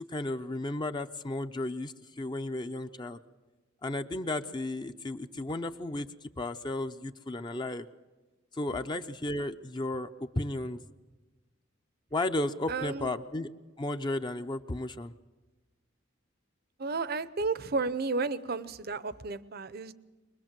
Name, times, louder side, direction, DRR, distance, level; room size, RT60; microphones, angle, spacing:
voice 1, 0.0-3.2 3.8-7.9 8.5-10.1 10.4-10.8 12.1-13.5 13.8-15.1, left 2 dB, 25° left, 8 dB, 0.6 m, -34 dB
voice 2, 12.7-13.1 16.8-19.9, right 4 dB, 55° right, 15 dB, 0.8 m, -32 dB
23.5 x 21.0 x 7.5 m, 1.2 s
head